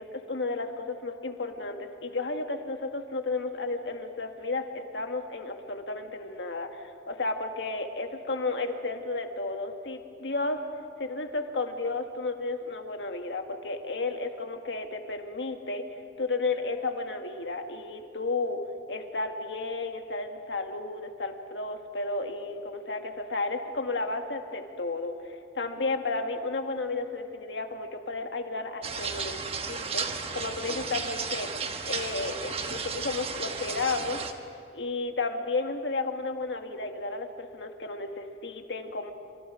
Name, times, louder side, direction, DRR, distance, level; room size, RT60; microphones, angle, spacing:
voice 1, 0.0-10.6 11.0-18.6 18.9-31.5 31.8-34.2 34.7-39.1, left 3 dB, 75° left, 5 dB, 1.7 m, -33 dB
sound 1, 28.8-34.3, right 5 dB, 30° right, 1.2 m, -34 dB
27.0 x 25.5 x 5.0 m, 2.5 s
head